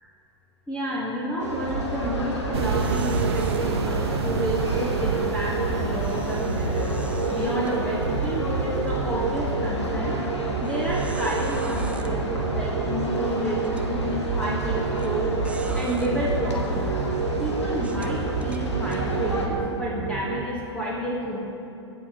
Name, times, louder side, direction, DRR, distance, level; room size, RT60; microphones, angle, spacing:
voice 1, 0.7-6.7 7.3-10.1 10.6-15.4 15.7-16.9 17.4-21.4, equal, 10° left, -5 dB, 1.4 m, -30 dB
sound 1, 1.4-19.5, equal, 80° left, 1.3 m, -30 dB
sound 2, 1.7-2.0 2.3-2.4 2.8-3.6 6.0-8.3 8.8-8.9 9.5-9.6 10.6-12.1 13.0-13.1 13.6-13.9 15.0-15.1 15.4-16.1 16.8-16.9 17.8-19.0, right 3 dB, 10° right, 0.4 m, -44 dB
sound 3, 2.5-20.5, right 7 dB, 65° right, 0.5 m, -29 dB
16.0 x 6.8 x 3.0 m, 2.8 s
figure-of-eight pair, 95°, 15 cm